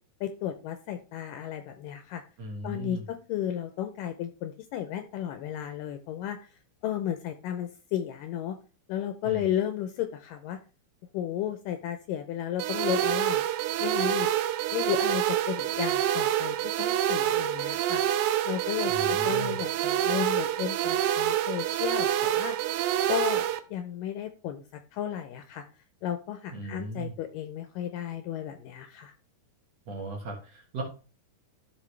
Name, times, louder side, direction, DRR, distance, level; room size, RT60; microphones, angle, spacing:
voice 1, 0.2-2.2 2.6-6.5 6.8-8.6 8.9-10.6 11.1-13.4 13.8-14.3 14.7-18.0 18.5-22.6 23.1-24.6 24.9-25.7 26.0-29.1, left 10 dB, 80° left, 8 dB, 2.1 m, -33 dB
voice 2, 2.4-3.0 9.2-9.5 18.9-19.6 26.5-27.1 29.9-30.8, right 2 dB, 55° right, 0 dB, 2.2 m, -37 dB
sound 1, 12.6-23.6, right 11 dB, 80° right, 2.3 m, -27 dB
13.5 x 5.4 x 3.2 m, 0.35 s
omnidirectional pair, 4.2 m